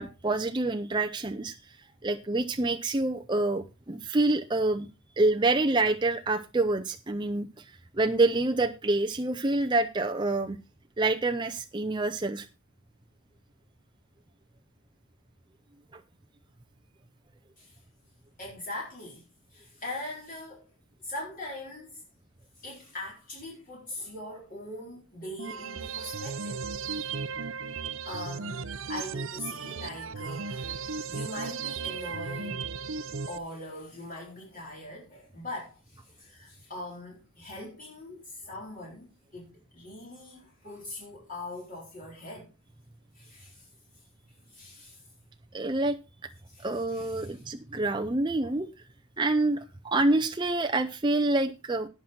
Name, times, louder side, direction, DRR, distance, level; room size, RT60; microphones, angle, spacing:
voice 1, 0.0-1.6 2.0-4.9 5.2-7.6 8.0-10.6 11.0-12.5 15.9-16.0 45.5-46.0 46.6-48.7 49.2-51.9, right 2 dB, 20° right, 0.5 m, -27 dB
voice 2, 18.4-19.2 19.5-20.7 21.0-22.0 22.6-26.7 26.9-27.2 28.0-32.7 33.3-39.1 39.3-42.5 43.1-43.7 44.3-45.0 46.5-47.4 48.4-48.6, left 1 dB, 40° left, 4.0 m, -42 dB
sound 1, 25.4-33.4, right 5 dB, 60° right, 0.6 m, -35 dB
18.0 x 6.0 x 4.2 m
head